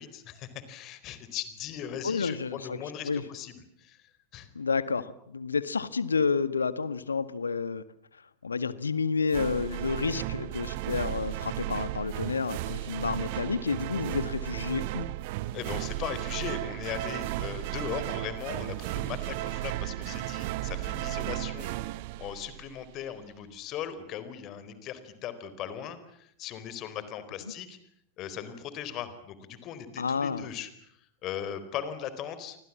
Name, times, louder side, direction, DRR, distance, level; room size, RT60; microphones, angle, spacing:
voice 1, 0.0-3.5 3.8-4.5 15.5-21.7 22.2-27.8 28.2-32.6, left 9 dB, 35° left, 13 dB, 4.3 m, -38 dB
voice 2, 2.0-2.8 3.0-3.2 4.5-7.8 8.4-15.1 30.0-30.5, left 5 dB, 75° left, 15 dB, 1.6 m, -30 dB
sound 1, 9.3-22.9, right 17 dB, 50° right, 1.1 m, -34 dB
29.5 x 25.0 x 7.5 m, 0.72 s
figure-of-eight pair, 90°, 0 cm